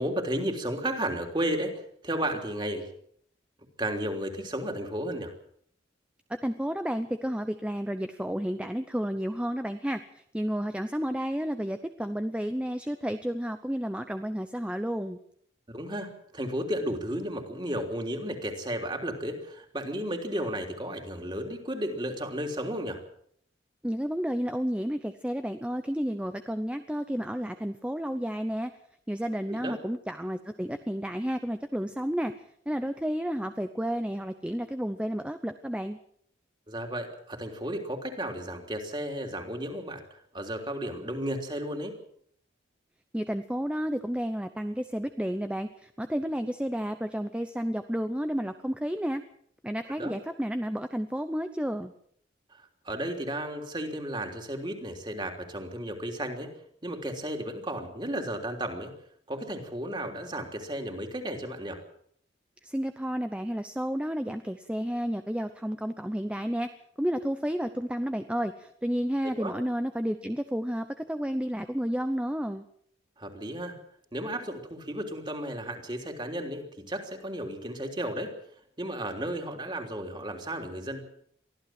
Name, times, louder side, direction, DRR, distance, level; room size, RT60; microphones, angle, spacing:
voice 1, 0.0-2.9 3.8-5.3 15.7-23.0 29.5-29.8 36.7-42.0 50.0-50.1 52.5-56.5 56.8-58.9 59.3-61.8 69.4-69.5 73.2-73.8 74.1-78.3 78.8-81.0, right 1 dB, 25° right, 4 dB, 3.5 m, -33 dB
voice 2, 6.3-15.2 23.8-28.7 29.1-32.3 32.7-36.0 43.1-49.2 49.6-51.9 62.6-66.7 67.0-72.6, equal, 5° right, 9 dB, 0.7 m, -31 dB
23.5 x 15.0 x 7.7 m, 0.66 s
head